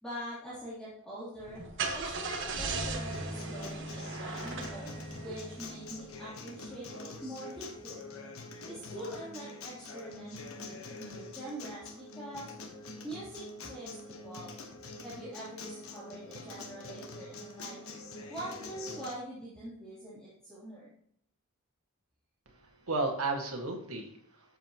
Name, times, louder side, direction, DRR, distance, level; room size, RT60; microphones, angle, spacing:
voice 1, 0.0-1.6 1.9-8.0 8.7-12.5 13.0-14.5 15.0-17.8 18.3-20.9, right 1 dB, 5° left, -11 dB, 3.2 m, -44 dB
Car / Engine starting, 1.4-6.1, right 3 dB, 55° right, 1.5 m, -37 dB
Acoustic guitar, 3.1-19.1, left 2 dB, 70° left, 1.2 m, -45 dB
voice 2, 22.5-24.6, right 3 dB, 75° right, 3 dB, 1.8 m, -34 dB
12.0 x 7.5 x 3.0 m, 0.69 s
head